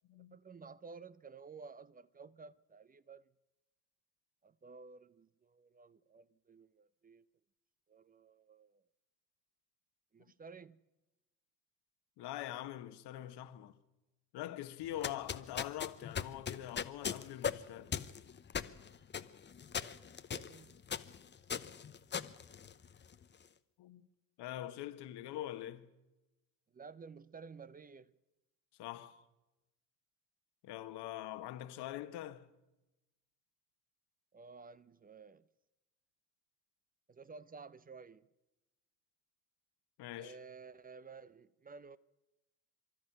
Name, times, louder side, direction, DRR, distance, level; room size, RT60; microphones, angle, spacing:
voice 1, 0.3-3.3 4.4-7.3 7.9-8.8 10.1-10.8 19.8-20.8 26.7-28.1 34.3-35.5 37.1-38.3 40.2-42.0, right 5 dB, 20° right, 0.6 m, -53 dB
voice 2, 12.2-13.7 14.3-18.0 23.8-24.1 24.4-25.9 28.8-29.2 30.6-32.5 40.0-40.3, left 13 dB, 55° left, 1.4 m, -44 dB
sound 1, 14.8-23.2, left 7 dB, 20° left, 0.8 m, -40 dB
24.0 x 13.0 x 9.2 m
hypercardioid pair, 60°, 48 cm